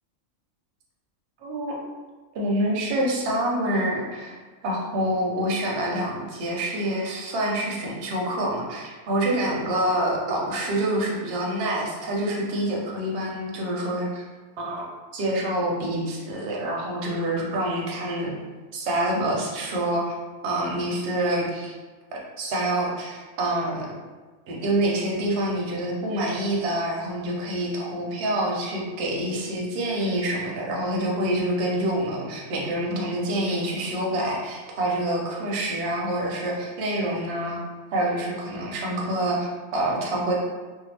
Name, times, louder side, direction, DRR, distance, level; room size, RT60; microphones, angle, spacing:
voice 1, 1.4-1.8 2.3-14.2 14.6-14.7 15.1-18.3 18.7-20.1 20.4-21.7 22.1-23.9 24.5-37.6 37.9-40.3, right 1 dB, 60° right, -2 dB, 0.7 m, -26 dB
2.6 x 2.1 x 3.2 m, 1.3 s
omnidirectional pair, 1.5 m